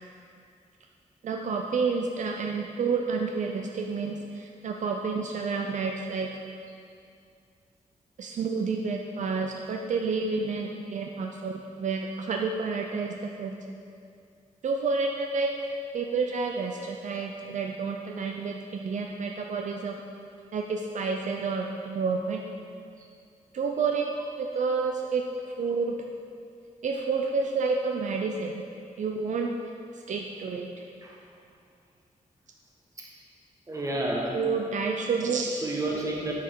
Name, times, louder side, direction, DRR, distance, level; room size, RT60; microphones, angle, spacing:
voice 1, 1.2-6.3 8.2-13.5 14.6-15.5 15.9-20.0 20.5-22.4 23.5-24.1 24.4-25.2 25.6-25.9 26.8-28.6 29.0-29.5 29.9-30.7 34.3-35.6, right 4 dB, 65° right, 2 dB, 0.5 m, -29 dB
voice 2, 33.7-34.4 35.6-36.3, right 2 dB, 25° right, -2 dB, 1.2 m, -31 dB
9.3 x 5.8 x 4.7 m, 2.4 s
wide cardioid pair, 175°, 13 cm